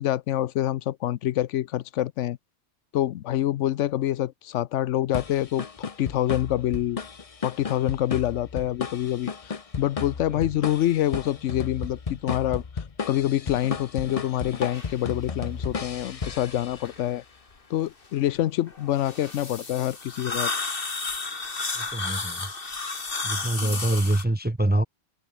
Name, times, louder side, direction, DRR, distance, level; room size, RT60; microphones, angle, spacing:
voice 1, 0.0-2.4 2.9-5.7 6.0-7.0 7.4-9.3 9.8-12.6 13.1-17.2 17.7-20.5 23.6-23.8, left 13 dB, 80° left, 0.9 m, -26 dB
sound 1, 5.1-17.1, left 5 dB, 30° left, 0.9 m, -34 dB
sound 2, 14.6-14.9 15.6-15.7 16.2-17.0 18.7-24.2, left 3 dB, 50° left, 2.4 m, -32 dB
voice 2, 21.8-22.5 23.2-24.8, right 1 dB, 10° right, 0.5 m, -25 dB
omnidirectional pair, 1.2 m